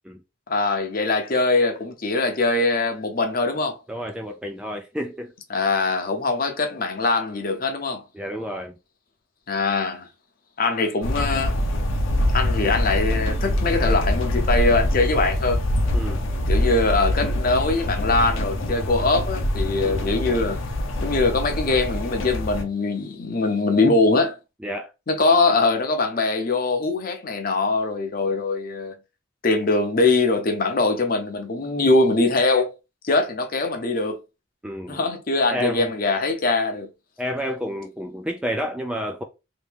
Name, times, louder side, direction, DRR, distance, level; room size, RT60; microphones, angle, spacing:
voice 1, 0.5-3.8 5.5-8.0 9.5-10.1 10.6-11.5 12.3-15.6 16.5-20.6 21.0-24.4 25.1-28.9 29.4-32.7 33.0-34.2 34.9-36.9, left 3 dB, 45° left, 0.7 m, -22 dB
voice 2, 3.9-5.3 8.1-8.8 15.9-16.2 19.8-20.2 24.6-24.9 34.6-35.1 35.5-35.9 37.2-39.2, equal, 5° right, 0.3 m, -30 dB
sound 1, 11.0-22.6, left 1 dB, 80° left, 0.7 m, -24 dB
3.0 x 2.6 x 3.3 m
head